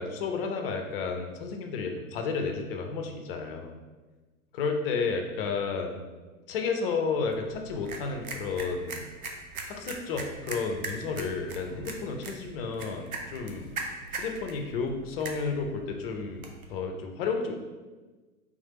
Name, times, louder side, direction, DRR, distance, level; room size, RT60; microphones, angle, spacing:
voice 1, 0.0-3.7 4.5-6.0 6.5-9.0 9.7-13.7 14.1-17.5, left 4 dB, 40° left, 4 dB, 0.7 m, -32 dB
sound 1, 7.2-16.7, right 3 dB, 75° right, 0.8 m, -41 dB
3.5 x 3.3 x 4.2 m, 1.3 s
figure-of-eight pair, 95°, 43 cm